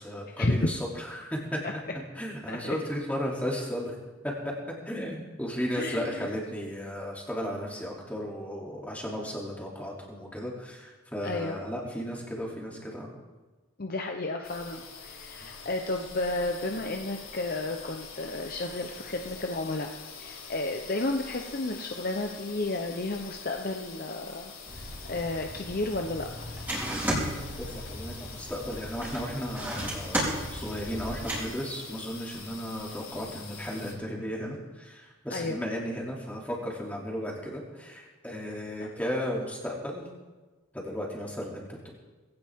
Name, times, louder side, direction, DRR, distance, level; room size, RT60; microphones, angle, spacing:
voice 1, 0.0-1.6 2.1-3.9 4.2-4.5 4.8-13.1 15.4-15.5 27.3-40.1 40.7-41.9, equal, 5° left, -3 dB, 2.9 m, -35 dB
voice 2, 5.7-6.3 11.2-11.6 13.8-26.3 35.3-35.6, left 2 dB, 45° left, 3 dB, 0.8 m, -32 dB
sound 1, 14.4-33.9, left 5 dB, 80° left, 3.4 m, -45 dB
sound 2, 24.7-31.4, right 1 dB, 10° right, 4.2 m, -34 dB
20.0 x 16.5 x 3.7 m, 1.3 s
head